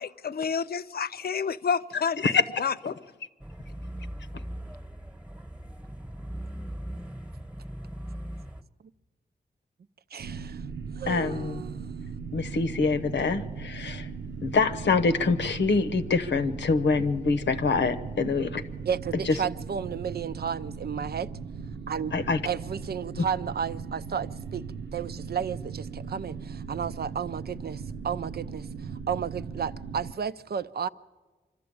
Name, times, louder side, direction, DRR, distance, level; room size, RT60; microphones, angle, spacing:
voice 1, 0.0-2.2 2.6-2.9, left 6 dB, 60° left, 0.6 m, -29 dB
sound 1, 3.4-8.6, equal, 5° right, 1.2 m, -39 dB
voice 2, 10.1-10.6 11.0-11.8 18.9-21.3 21.9-22.1 22.5-24.7 24.9-28.7 29.1-30.9, right 7 dB, 60° right, 0.6 m, -32 dB
sound 2, 10.2-30.1, right 5 dB, 80° right, 0.9 m, -38 dB
voice 3, 11.1-11.6 12.3-14.1 14.4-18.6 19.2-19.4 22.1-22.4 23.2-23.3, left 4 dB, 80° left, 1.0 m, -25 dB
25.0 x 13.0 x 8.6 m
wide cardioid pair, 90°, 18 cm